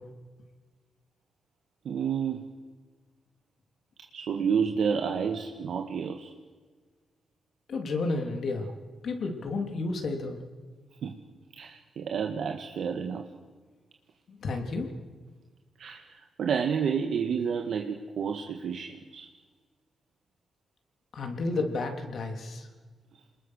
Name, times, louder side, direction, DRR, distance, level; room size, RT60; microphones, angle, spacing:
voice 1, 1.8-2.5 4.1-6.3 11.0-11.2 11.5-13.3 15.8-19.3, right 6 dB, 75° right, 3 dB, 1.7 m, -30 dB
voice 2, 7.7-8.7 9.0-10.4 14.3-14.9 21.1-22.7, left 3 dB, 65° left, 4 dB, 3.5 m, -31 dB
27.5 x 20.5 x 6.6 m, 1.4 s
cardioid pair, 105°, 0 cm